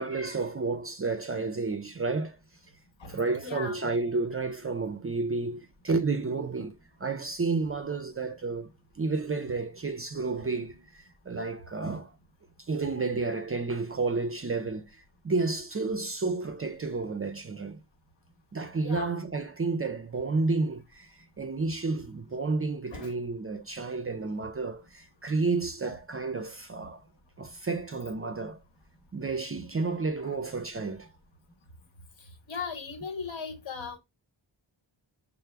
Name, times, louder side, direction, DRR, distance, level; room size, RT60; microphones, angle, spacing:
voice 1, 0.0-2.4 3.1-8.7 9.0-12.1 12.6-17.8 18.5-27.0 27.4-28.6 29.1-31.1, right 3 dB, 30° right, 0.4 m, -31 dB
voice 2, 3.0-3.7 18.8-19.1 22.9-23.1 30.2-30.4 32.5-34.0, left 5 dB, 70° left, 1.2 m, -38 dB
5.6 x 2.0 x 3.3 m
wide cardioid pair, 100°, 47 cm